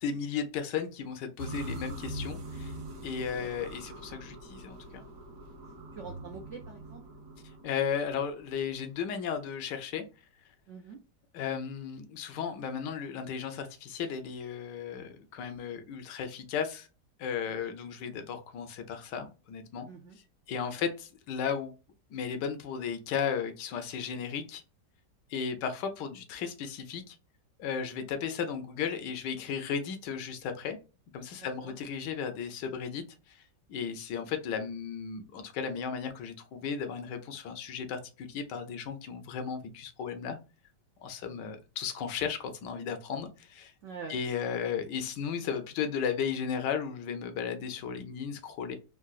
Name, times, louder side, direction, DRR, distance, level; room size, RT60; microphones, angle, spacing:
voice 1, 0.0-2.7 3.0-5.0 7.6-10.0 11.3-16.9 17.2-19.9 20.5-21.7 22.1-24.6 25.3-27.2 27.6-30.8 31.1-33.0 33.3-33.4 33.7-40.4 41.0-43.7 44.1-48.8, left 7 dB, 85° left, 8 dB, 1.3 m, -35 dB
sound 1, 1.4-8.5, right 1 dB, 60° right, 1.1 m, -43 dB
voice 2, 5.9-7.0 10.7-11.0 17.5-17.6 19.9-20.2 20.8-20.9 31.4-31.7 41.2-41.5 43.8-44.2, right 5 dB, 75° right, 3 dB, 0.6 m, -45 dB
3.8 x 2.3 x 2.3 m, 0.31 s
omnidirectional pair, 1.9 m